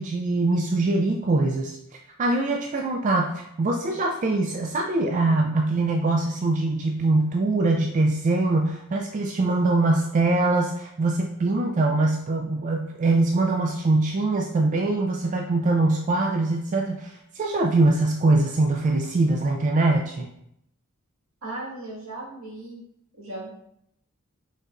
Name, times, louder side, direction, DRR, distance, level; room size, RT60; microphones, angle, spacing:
voice 1, 0.0-20.3, right 2 dB, 35° right, 2 dB, 0.3 m, -23 dB
voice 2, 21.4-22.8 23.2-23.5, right 2 dB, 75° right, -6 dB, 1.7 m, -36 dB
5.1 x 3.9 x 2.5 m, 0.77 s
head